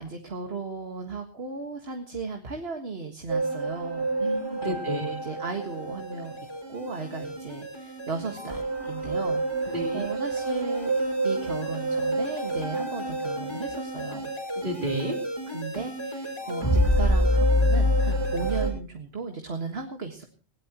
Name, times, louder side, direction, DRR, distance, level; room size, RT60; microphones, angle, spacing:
voice 1, 0.0-4.1 4.6-6.4 6.7-10.9 11.2-14.3 15.5-20.3, right 4 dB, 65° right, 3 dB, 2.0 m, -36 dB
sound 1, 3.3-18.7, equal, 25° left, 5.3 m, -28 dB
voice 2, 4.2-5.2 9.7-10.1 14.6-15.2, equal, 45° right, 2 dB, 3.8 m, -32 dB
20.0 x 18.0 x 3.0 m, 0.35 s
omnidirectional pair, 1.1 m